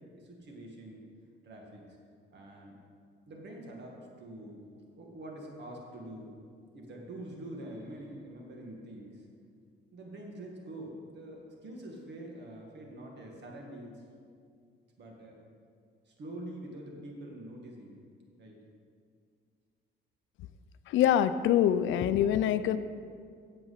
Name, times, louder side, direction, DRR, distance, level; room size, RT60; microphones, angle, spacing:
voice 1, 0.2-1.0 1.4-1.8 2.3-2.8 3.3-4.6 4.9-6.3 6.7-9.3 9.9-14.0 15.0-15.4 16.1-18.0 18.4-18.6, right 1 dB, 60° right, 0 dB, 2.0 m, -45 dB
voice 2, 20.9-22.8, left 10 dB, 80° left, 13 dB, 0.5 m, -25 dB
8.1 x 7.7 x 5.8 m, 2.2 s
cardioid pair, 90°, 20 cm